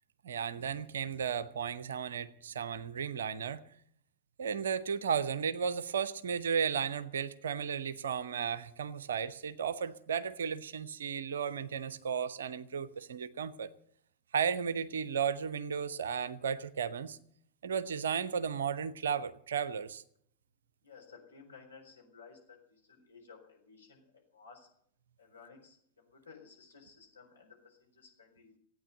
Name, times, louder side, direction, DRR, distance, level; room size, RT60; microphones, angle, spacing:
voice 1, 0.2-3.6 4.4-13.7 14.3-17.2 17.6-20.0, right 7 dB, 65° right, 0.8 m, -34 dB
voice 2, 20.8-24.7 25.2-28.5, left 5 dB, 75° left, 4.5 m, -56 dB
14.5 x 9.3 x 9.1 m
figure-of-eight pair, 90°, 0 cm